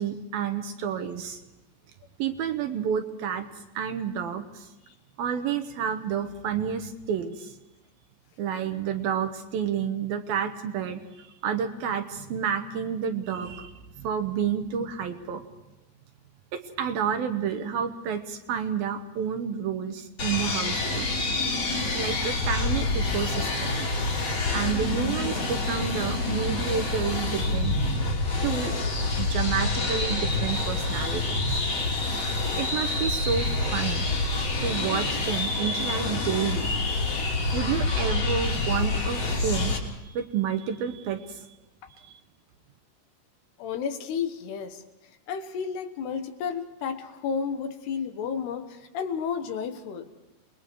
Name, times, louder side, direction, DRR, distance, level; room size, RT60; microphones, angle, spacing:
voice 1, 0.0-1.4 2.2-3.5 3.7-4.7 5.2-7.5 8.4-15.5 16.5-21.1 21.9-23.9 24.5-27.8 28.4-28.7 29.2-31.6 32.5-34.1 34.6-36.7 37.5-39.8 40.0-41.5, right 8 dB, 70° right, 7 dB, 2.8 m, -30 dB
sound 1, 20.2-39.8, left 2 dB, 40° left, 4.2 m, -27 dB
voice 2, 43.6-44.8 45.3-50.1, left 6 dB, 75° left, 8 dB, 3.4 m, -32 dB
29.0 x 21.5 x 4.7 m, 1.0 s
omnidirectional pair, 4.9 m